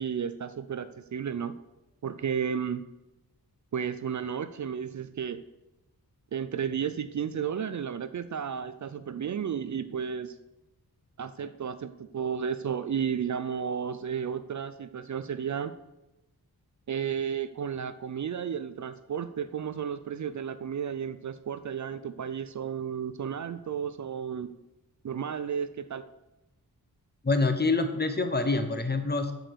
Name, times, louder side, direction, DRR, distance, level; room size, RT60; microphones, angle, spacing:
voice 1, 0.0-1.5 2.0-2.8 3.7-5.4 6.3-10.3 11.2-15.7 16.9-24.5 25.0-26.0, right 7 dB, 50° right, 13 dB, 0.4 m, -33 dB
voice 2, 27.2-29.3, left 3 dB, 25° left, 8 dB, 0.9 m, -26 dB
7.8 x 6.2 x 6.7 m, 0.98 s
wide cardioid pair, 145°, 37 cm